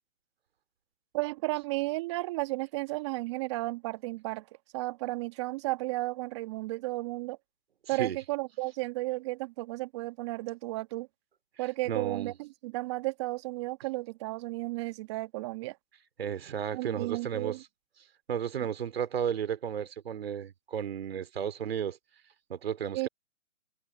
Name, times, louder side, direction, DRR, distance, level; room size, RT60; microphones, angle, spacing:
voice 1, 1.1-4.5 4.7-7.4 7.9-11.1 11.6-15.8 16.7-17.6 22.9-23.1, right 21 dB, 20° right, 1.7 m, -33 dB
voice 2, 7.9-8.2 11.9-12.3 16.2-17.6 18.3-22.0 22.5-23.1, right 8 dB, 45° right, 2.8 m, -33 dB
hypercardioid pair, 150°, 40 cm